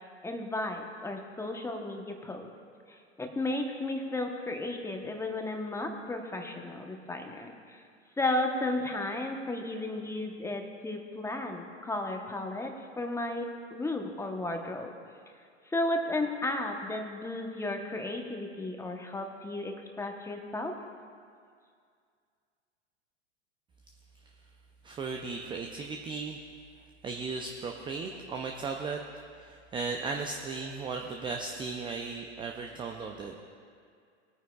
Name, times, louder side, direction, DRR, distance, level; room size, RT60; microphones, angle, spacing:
voice 1, 0.2-2.5 2.9-7.8 8.2-14.9 15.7-20.7, left 2 dB, 10° left, 3 dB, 1.0 m, -34 dB
voice 2, 24.8-26.4 27.0-29.0 29.4-33.4, right 4 dB, 15° right, 2 dB, 0.5 m, -36 dB
19.5 x 9.4 x 2.3 m, 2.2 s
hypercardioid pair, 105°, 35 cm